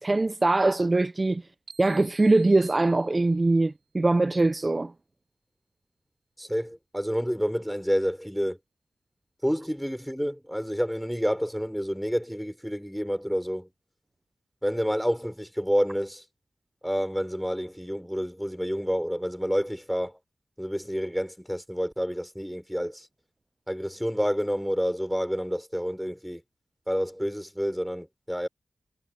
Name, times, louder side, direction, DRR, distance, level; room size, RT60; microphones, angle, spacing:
voice 1, 0.0-1.4 1.8-4.9, right 2 dB, 25° right, 0.3 m, -22 dB
sound 1, 1.7-3.6, right 6 dB, 55° right, 3.3 m, -51 dB
voice 2, 6.4-8.6 9.4-13.7 14.6-16.2 16.8-20.2 20.6-23.1 23.7-26.4 26.9-28.5, equal, ahead, 5.6 m, -29 dB
wide cardioid pair, 140°, 0 cm